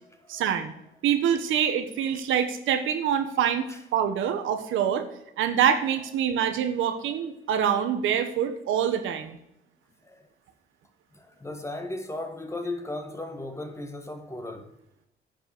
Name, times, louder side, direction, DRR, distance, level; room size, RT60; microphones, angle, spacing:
voice 1, 0.3-0.7 1.0-5.1 5.4-9.4, right 9 dB, 85° right, 1.3 m, -25 dB
voice 2, 11.1-14.7, left 2 dB, 15° left, 1.7 m, -36 dB
10.0 x 6.1 x 7.8 m
cardioid pair, 90°, 20 cm